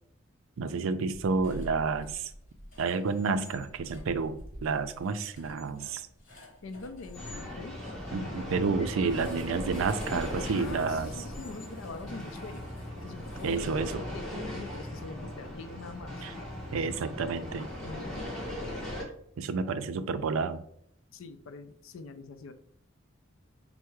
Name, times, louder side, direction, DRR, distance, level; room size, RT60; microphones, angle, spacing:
voice 1, 0.6-2.3 2.8-6.1 8.1-11.1 13.4-14.0 16.2-16.3 16.7-17.7 19.4-20.6, right 4 dB, 75° right, 11 dB, 0.4 m, -30 dB
sound 1, 1.1-7.5 9.0-14.3, equal, 40° left, 1.3 m, -47 dB
voice 2, 6.6-7.8 10.4-12.7 13.0-13.8 14.1-16.3 17.8-18.3 21.1-22.5, left 3 dB, 70° left, 10 dB, 0.4 m, -44 dB
sound 2, 7.1-19.0, left 1 dB, 5° left, 1.1 m, -39 dB
4.5 x 2.0 x 4.4 m, 0.68 s
head